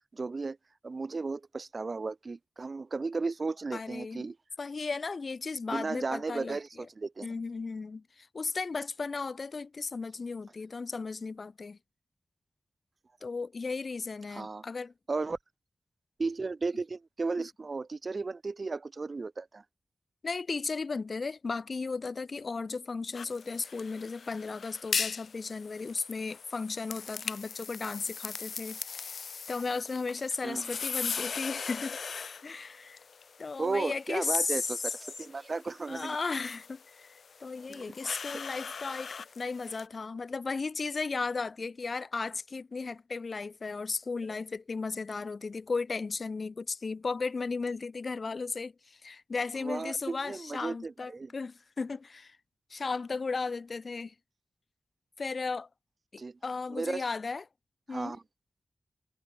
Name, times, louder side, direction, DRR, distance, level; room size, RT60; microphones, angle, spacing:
voice 1, 0.1-0.6 0.8-4.4 5.7-7.3 14.3-14.6 15.1-15.4 16.2-19.6 30.4-30.8 33.6-36.2 37.7-37.9 38.3-38.4 49.6-51.3 56.2-56.4 56.7-57.0 57.9-58.2, right 3 dB, 45° right, 2.6 m, -35 dB
voice 2, 3.7-4.3 4.6-6.6 7.2-11.8 13.2-14.9 20.2-29.1 29.5-32.0 32.4-33.0 33.4-34.9 35.9-52.4 52.7-54.1 55.2-55.7 56.1-57.4 57.9-58.2, left 4 dB, 50° left, 3.4 m, -35 dB
sound 1, 23.1-39.9, left 5 dB, 75° left, 5.9 m, -40 dB
wide cardioid pair, 105°, 0 cm